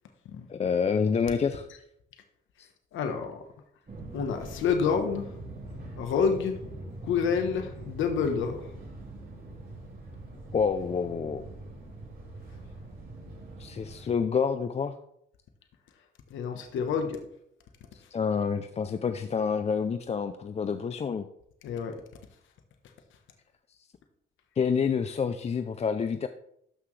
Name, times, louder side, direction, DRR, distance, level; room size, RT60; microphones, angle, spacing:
voice 1, 0.5-1.7 2.6-2.7 10.5-11.4 13.6-14.9 17.9-21.3 24.6-26.3, left 6 dB, 35° left, 9 dB, 0.5 m, -28 dB
voice 2, 2.9-3.4 4.1-5.3 6.0-6.5 7.0-8.6 16.3-17.2 21.6-22.0, left 6 dB, 80° left, 5 dB, 1.2 m, -28 dB
Fixed-wing aircraft airplane, 3.9-14.2, right 2 dB, 45° right, 3.8 m, -43 dB
12.5 x 5.8 x 3.3 m, 0.74 s
cardioid pair, 90°, 20 cm